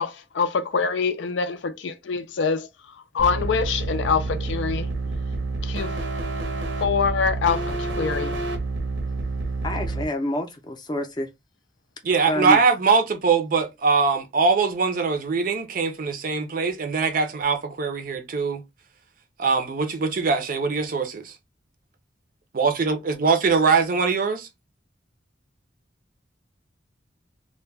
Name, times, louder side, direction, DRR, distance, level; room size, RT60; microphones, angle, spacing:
voice 1, 0.0-4.9 5.6-5.9 6.8-8.3, left 5 dB, 80° left, 0.4 m, -25 dB
sound 1, 3.2-10.0, right 3 dB, 85° right, 0.7 m, -28 dB
voice 2, 9.6-11.3 12.3-12.6, equal, 25° left, 0.5 m, -27 dB
voice 3, 12.0-18.6 19.4-21.3 22.5-24.5, right 4 dB, 50° right, 0.5 m, -22 dB
2.2 x 2.1 x 3.2 m
head